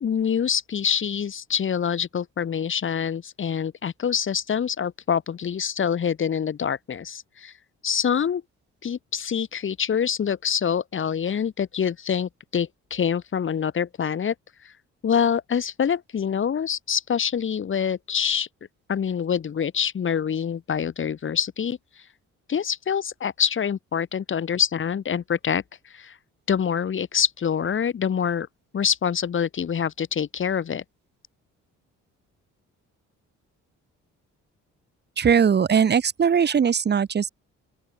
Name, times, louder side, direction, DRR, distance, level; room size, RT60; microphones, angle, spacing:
voice 1, 0.0-7.5 7.8-8.4 8.8-14.3 14.6-14.7 15.0-18.5 18.9-21.8 22.5-26.2 26.5-28.5 28.7-30.8, left 7 dB, 40° left, 1.3 m, -25 dB
voice 2, 35.2-37.3, right 7 dB, 35° right, 1.0 m, -20 dB
open air
cardioid pair, 90°, 30 cm